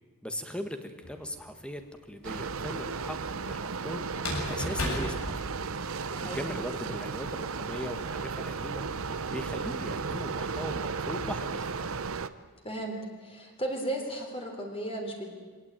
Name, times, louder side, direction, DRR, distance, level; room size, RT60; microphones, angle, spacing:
voice 1, 0.2-3.2 3.4-5.4 6.2-11.7, equal, 5° left, 7 dB, 1.6 m, -39 dB
sound 1, 1.0-1.7 4.1-6.1, left 1 dB, 65° left, 6.8 m, -34 dB
sound 2, 2.2-12.3, right 5 dB, 65° right, 0.9 m, -34 dB
voice 2, 6.1-6.4 12.6-13.0 13.2-15.3, right 1 dB, 25° left, 2 dB, 3.7 m, -35 dB
24.0 x 17.5 x 9.1 m, 1.4 s
head